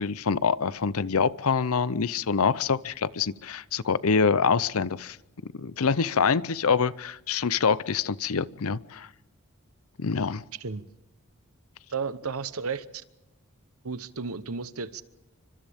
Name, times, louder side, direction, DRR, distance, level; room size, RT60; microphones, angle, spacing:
voice 1, 0.0-5.2 5.5-9.1 10.0-10.4, left 5 dB, 75° left, 18 dB, 0.6 m, -25 dB
voice 2, 10.5-10.8 11.9-13.0 13.8-15.0, right 5 dB, 75° right, 14 dB, 1.0 m, -33 dB
30.0 x 25.0 x 3.6 m, 1.0 s
head